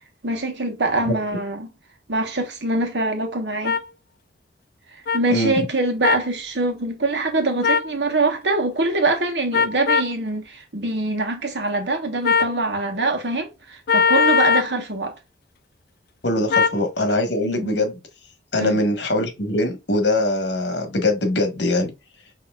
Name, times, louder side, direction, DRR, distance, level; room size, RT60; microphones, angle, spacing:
voice 1, 0.2-1.7 2.1-3.8 5.1-15.1 17.5-17.8 18.6-18.8, right 2 dB, 75° right, 1.1 m, -24 dB
sound 1, 3.6-3.8 5.1-5.2 6.0-6.3 7.6-7.9 9.5-10.1 12.2-12.6 13.9-14.7 16.5-16.8, left 5 dB, 60° left, 0.4 m, -19 dB
voice 2, 16.2-18.0 18.5-21.9, left 1 dB, 75° left, 1.3 m, -22 dB
5.8 x 2.8 x 2.3 m
head